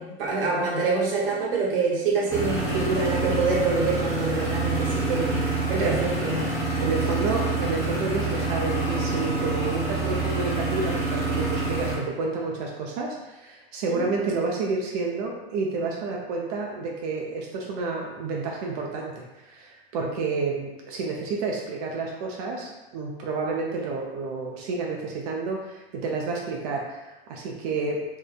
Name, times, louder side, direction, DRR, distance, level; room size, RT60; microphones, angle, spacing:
voice 1, 0.0-6.5 13.9-14.0, right 3 dB, 60° right, -3 dB, 0.9 m, -26 dB
sound 1, 2.3-12.0, right 3 dB, 10° left, 0.8 m, -27 dB
voice 2, 6.8-28.0, right 3 dB, 40° right, -1 dB, 0.4 m, -30 dB
2.7 x 2.1 x 2.4 m, 1.1 s
hypercardioid pair, 105°, 32 cm